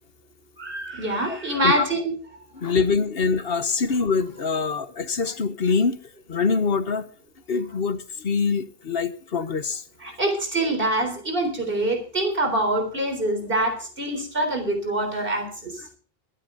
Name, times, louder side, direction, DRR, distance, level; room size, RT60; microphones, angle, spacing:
voice 1, 0.6-2.1 10.0-15.8, right 1 dB, 60° right, 4 dB, 4.2 m, -25 dB
voice 2, 2.6-6.0 6.3-7.1 7.5-9.8, left 5 dB, 70° left, 11 dB, 1.3 m, -24 dB
23.0 x 9.0 x 3.9 m, 0.41 s
omnidirectional pair, 1.0 m